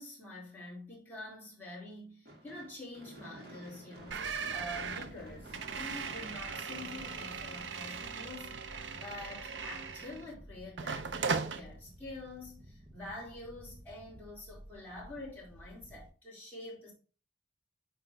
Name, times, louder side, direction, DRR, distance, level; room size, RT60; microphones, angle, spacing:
voice 1, 0.0-8.6 8.9-16.9, left 1 dB, 10° left, 2.9 m, -47 dB
Gunshot gunfire / Fireworks, 2.3-8.5, equal, 60° right, 2.1 m, -52 dB
sound 1, 4.0-16.1, equal, 25° right, 0.9 m, -54 dB
sound 2, 4.1-10.3 10.8-11.6, right 5 dB, 85° right, 0.6 m, -38 dB
8.8 x 3.3 x 3.4 m
head